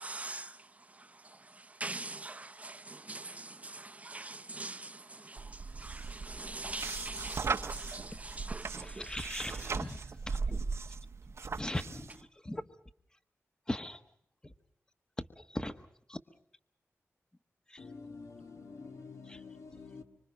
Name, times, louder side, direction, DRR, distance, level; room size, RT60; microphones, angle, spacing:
voice 1, 0.0-9.7, right 2 dB, 30° right, 0.8 m, -44 dB
sound 1, 5.4-12.2, right 4 dB, 65° right, 0.9 m, -38 dB
voice 2, 8.8-10.7 11.6-12.6 13.7-14.0 14.4-14.5 15.2-16.2 17.7-17.8 19.3-19.4, left 1 dB, 15° left, 1.2 m, -40 dB
voice 3, 17.8-20.0, left 4 dB, 70° left, 2.0 m, -48 dB
25.5 x 25.5 x 5.3 m
wide cardioid pair, 105°, 5 cm